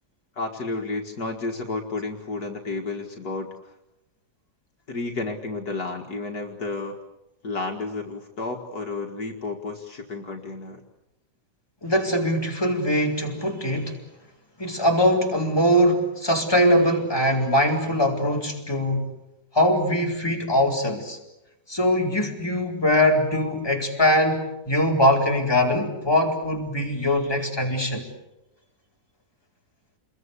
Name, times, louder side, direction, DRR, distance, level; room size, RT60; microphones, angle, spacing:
voice 1, 0.4-3.7 4.9-7.0 7.4-10.8, left 3 dB, 60° left, 2 dB, 2.4 m, -31 dB
voice 2, 11.8-14.0 14.6-19.1 19.5-21.2 21.7-28.0, equal, 15° left, 0 dB, 4.4 m, -22 dB
28.5 x 22.0 x 8.3 m, 0.92 s
omnidirectional pair, 1.9 m